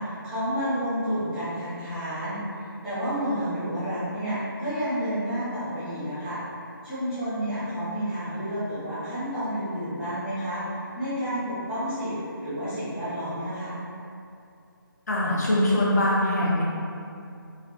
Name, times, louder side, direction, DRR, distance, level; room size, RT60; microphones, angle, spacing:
voice 1, 0.0-6.4 6.8-12.2 12.4-13.8, equal, 5° right, -17 dB, 0.9 m, -30 dB
voice 2, 15.1-16.6, left 1 dB, 45° left, -6 dB, 0.7 m, -22 dB
3.9 x 2.7 x 2.9 m, 2.5 s
figure-of-eight pair, 155°, 12 cm